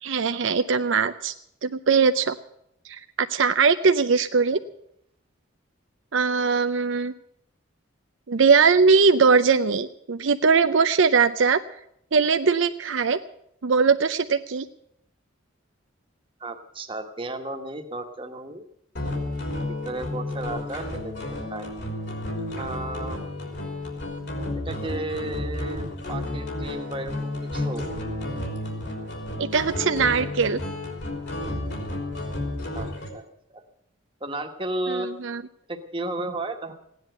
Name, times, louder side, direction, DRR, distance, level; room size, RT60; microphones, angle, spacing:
voice 1, 0.0-1.3 1.6-2.3 2.9-4.6 6.1-7.1 8.3-11.6 12.1-13.2 13.6-14.7 29.4-30.6 34.9-35.4, right 5 dB, 65° right, 9 dB, 0.6 m, -21 dB
voice 2, 16.4-18.6 19.8-21.1 21.5-21.7 22.6-23.2 24.6-27.9 32.7-33.2 33.5-33.6 34.2-35.1 35.7-36.7, right 2 dB, 25° right, 4 dB, 1.4 m, -33 dB
sound 1, 18.9-33.1, left 1 dB, 55° left, 3.5 m, -32 dB
16.5 x 10.5 x 7.8 m, 0.74 s
head